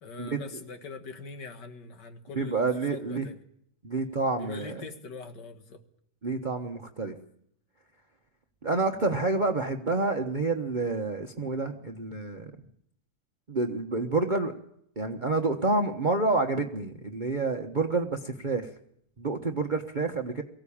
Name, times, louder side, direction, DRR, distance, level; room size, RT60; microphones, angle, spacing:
voice 1, 0.0-3.3 4.4-5.8, left 4 dB, 90° left, 7 dB, 2.4 m, -42 dB
voice 2, 2.3-3.3 3.8-4.8 6.2-7.1 8.6-12.5 13.5-14.6 15.0-18.7 19.2-20.4, right 3 dB, 30° right, 5 dB, 1.2 m, -28 dB
24.0 x 16.0 x 8.6 m, 0.72 s
omnidirectional pair, 1.8 m